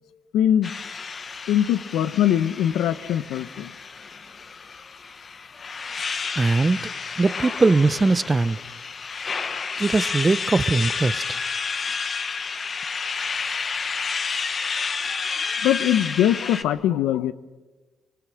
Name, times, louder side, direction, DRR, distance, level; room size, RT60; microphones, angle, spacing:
voice 1, 0.3-0.7 1.5-3.7 15.1-17.3, left 11 dB, 90° left, 14 dB, 0.7 m, -22 dB
sound 1, 0.6-16.6, left 5 dB, 40° left, 1.1 m, -30 dB
voice 2, 6.4-6.8 7.2-8.6 9.8-11.4, right 3 dB, 25° right, 16 dB, 0.7 m, -20 dB
26.5 x 19.0 x 6.3 m, 1.3 s
cardioid pair, 90°, 0 cm